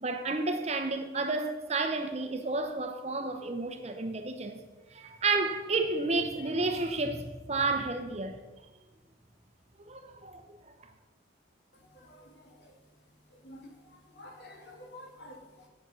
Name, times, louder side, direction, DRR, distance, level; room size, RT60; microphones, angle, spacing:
voice 1, 0.0-4.6 4.9-8.4 9.9-10.6, right 3 dB, 35° right, 0.7 m, -31 dB
voice 2, 11.7-12.7 13.3-15.7, left 1 dB, 60° left, 1.8 m, -51 dB
8.4 x 7.0 x 6.2 m
head